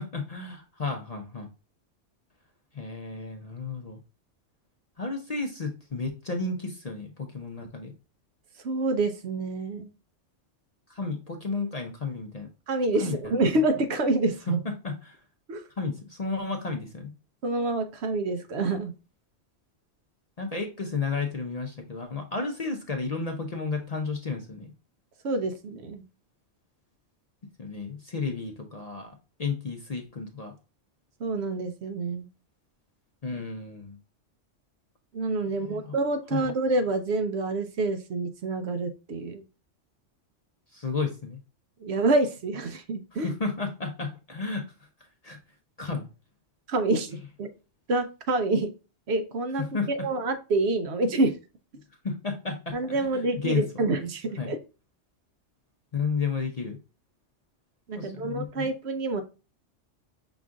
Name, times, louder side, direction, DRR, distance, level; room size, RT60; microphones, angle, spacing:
voice 1, 0.0-1.5 2.7-4.0 5.0-7.9 10.9-12.5 13.0-13.4 14.6-15.2 15.8-17.1 20.4-24.7 27.6-29.1 29.4-30.5 33.2-34.0 35.5-35.9 36.3-36.5 40.7-41.4 43.1-44.6 45.2-45.4 45.8-46.1 49.7-50.1 52.0-53.6 54.4-54.5 55.9-56.8 58.0-58.7, left 4 dB, 40° left, 3 dB, 0.6 m, -32 dB
voice 2, 8.6-9.9 12.7-14.6 15.5-15.6 17.4-18.9 25.2-26.0 31.2-32.3 35.1-39.4 41.8-43.3 46.7-47.5 47.9-48.7 49.1-51.3 52.7-54.6 57.9-59.2, right 2 dB, 65° right, 7 dB, 0.9 m, -27 dB
6.0 x 2.4 x 3.6 m, 0.32 s
omnidirectional pair, 1.3 m